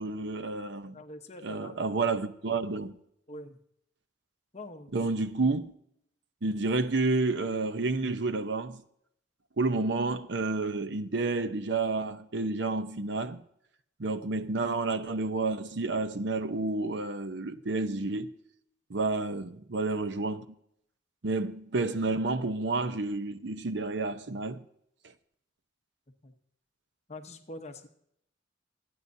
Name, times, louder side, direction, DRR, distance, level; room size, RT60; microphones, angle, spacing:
voice 1, 0.0-1.0 1.4-3.0 4.9-5.7 6.4-8.8 9.6-13.4 14.0-18.3 18.9-20.4 21.2-24.6, right 3 dB, 60° right, 0.7 m, -30 dB
voice 2, 0.9-1.8 3.3-3.6 4.5-4.9 26.2-26.3 27.1-27.9, left 1 dB, 35° left, 1.0 m, -44 dB
27.0 x 9.6 x 2.7 m
head